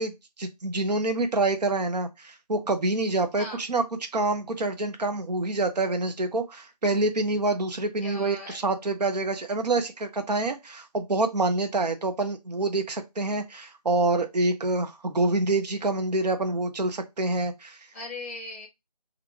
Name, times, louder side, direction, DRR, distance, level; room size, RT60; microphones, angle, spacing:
voice 1, 0.0-3.8 4.1-17.8, right 2 dB, 75° right, 0.7 m, -27 dB
voice 2, 8.0-8.6 17.9-18.7, left 2 dB, 20° left, 0.8 m, -38 dB
3.0 x 2.4 x 3.4 m
figure-of-eight pair, 170°, 21 cm